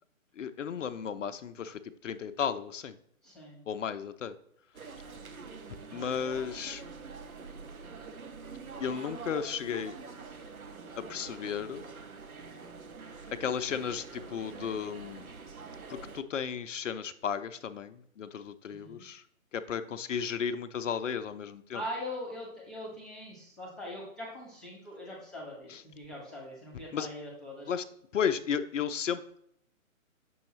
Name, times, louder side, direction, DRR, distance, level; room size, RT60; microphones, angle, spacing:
voice 1, 0.4-3.0 3.7-4.3 5.9-6.8 8.8-10.0 11.0-11.9 13.3-15.3 15.9-19.2 19.5-21.8 25.7-25.8 26.9-27.1 27.7-27.8 28.1-29.4, left 7 dB, 65° left, 10 dB, 0.5 m, -34 dB
voice 2, 3.2-3.6 18.7-19.0 21.7-27.7, left 1 dB, ahead, -3 dB, 1.1 m, -42 dB
sound 1, 4.7-16.2, right 4 dB, 85° right, 0.9 m, -45 dB
6.8 x 5.5 x 3.1 m, 0.70 s
figure-of-eight pair, 135°, 41 cm